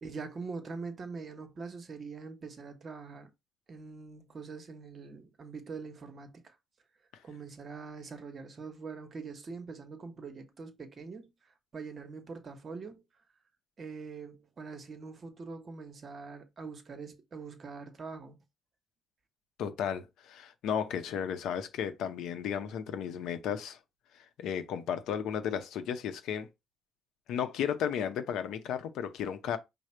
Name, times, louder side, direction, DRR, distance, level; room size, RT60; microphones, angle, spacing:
voice 1, 0.0-3.3 3.7-6.5 7.2-11.3 11.7-13.0 13.8-18.4, right 4 dB, 40° right, 0.9 m, -43 dB
voice 2, 19.6-23.8 24.1-26.5 27.3-29.6, left 8 dB, 80° left, 0.6 m, -34 dB
5.0 x 2.1 x 4.3 m
cardioid pair, 105°, 0 cm